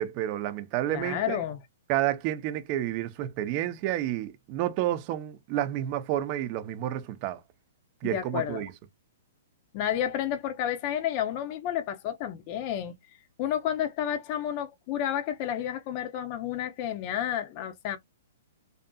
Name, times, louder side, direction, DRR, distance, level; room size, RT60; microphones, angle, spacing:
voice 1, 0.0-1.4 1.9-7.4 8.0-8.7, right 13 dB, 40° right, 0.6 m, -30 dB
voice 2, 0.9-1.6 8.0-8.6 9.7-12.9 13.4-18.0, left 10 dB, 40° left, 0.5 m, -31 dB
2.6 x 2.6 x 2.2 m
hypercardioid pair, 140°, 0 cm